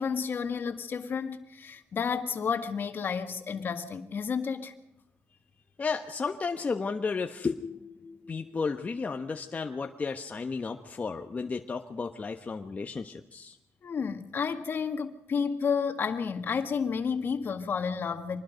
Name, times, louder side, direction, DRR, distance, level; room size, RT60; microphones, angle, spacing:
voice 1, 0.0-4.7 13.8-18.4, left 6 dB, 55° left, 1.9 m, -31 dB
voice 2, 5.8-13.6, left 4 dB, 35° left, 1.2 m, -33 dB
25.5 x 20.0 x 5.2 m
cardioid pair, 90°, 4 cm